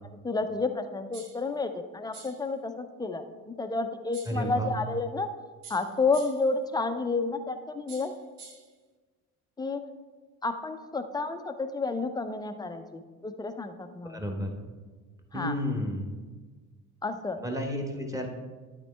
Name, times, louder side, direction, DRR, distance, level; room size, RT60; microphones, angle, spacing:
voice 1, 0.2-5.3 5.7-8.1 9.6-9.8 10.4-14.2 15.3-15.5 17.0-17.4, left 3 dB, 10° left, 8 dB, 0.6 m, -31 dB
sound 1, 1.1-1.5 2.1-2.5 4.1-4.5 5.6-6.5 7.9-8.7, right 4 dB, 80° right, 0.8 m, -48 dB
voice 2, 4.3-4.7 14.1-14.6 15.3-16.2 17.4-18.3, equal, 5° right, 2 dB, 1.4 m, -31 dB
11.5 x 4.4 x 3.4 m, 1.4 s
figure-of-eight pair, 50°, 44 cm